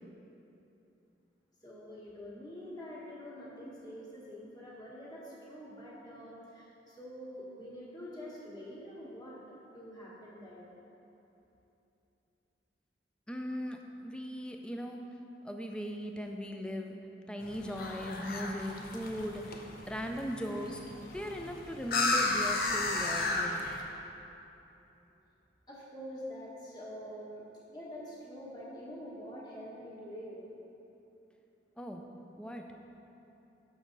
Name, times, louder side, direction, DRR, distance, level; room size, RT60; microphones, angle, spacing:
voice 1, 1.6-9.4 9.7-10.6 25.7-27.4 27.7-30.4, equal, 25° left, -7 dB, 1.4 m, -46 dB
voice 2, 13.3-15.0 15.4-16.9 17.3-20.8 21.1-23.7 31.8-32.0 32.4-32.6, equal, 5° left, 3 dB, 0.4 m, -38 dB
sound 1, 17.4-23.8, left 3 dB, 55° left, 0.6 m, -34 dB
6.3 x 6.2 x 3.9 m, 2.9 s
head